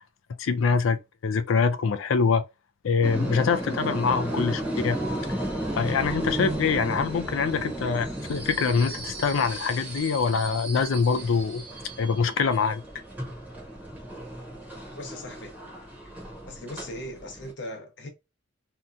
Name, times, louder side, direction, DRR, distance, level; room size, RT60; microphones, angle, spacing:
voice 1, 0.4-2.4 2.8-5.0 5.8-11.6 12.0-12.8, left 5 dB, 80° left, 0.4 m, -24 dB
sound 1, 3.0-17.5, right 1 dB, 10° right, 0.8 m, -34 dB
voice 2, 14.9-15.6 16.5-18.1, left 1 dB, 60° left, 0.8 m, -39 dB
2.8 x 2.2 x 2.5 m
head